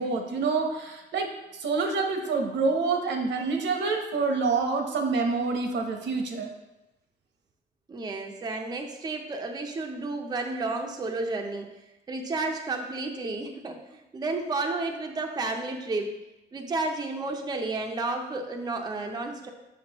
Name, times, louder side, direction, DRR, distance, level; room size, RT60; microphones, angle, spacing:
voice 1, 0.0-6.5, right 4 dB, 85° right, 3 dB, 1.0 m, -27 dB
voice 2, 7.9-11.7 12.1-16.1 16.5-19.5, right 3 dB, 20° right, 3 dB, 0.6 m, -31 dB
6.8 x 6.1 x 3.0 m, 0.96 s
wide cardioid pair, 155°, 18 cm